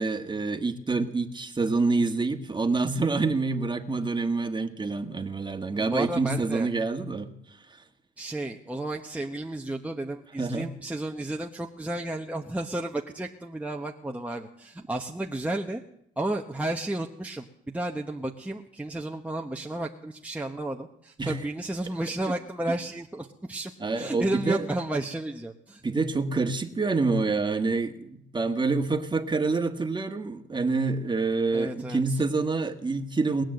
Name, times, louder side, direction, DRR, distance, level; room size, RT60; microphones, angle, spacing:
voice 1, 0.0-7.3 10.4-10.7 21.2-21.4 23.8-24.7 25.8-33.4, right 3 dB, 25° right, 6 dB, 1.6 m, -27 dB
voice 2, 5.7-6.7 8.2-15.8 16.2-25.8 31.5-32.2, right 1 dB, 5° right, 1 dB, 1.1 m, -32 dB
20.5 x 9.0 x 7.8 m, 0.77 s
cardioid pair, 90°, 20 cm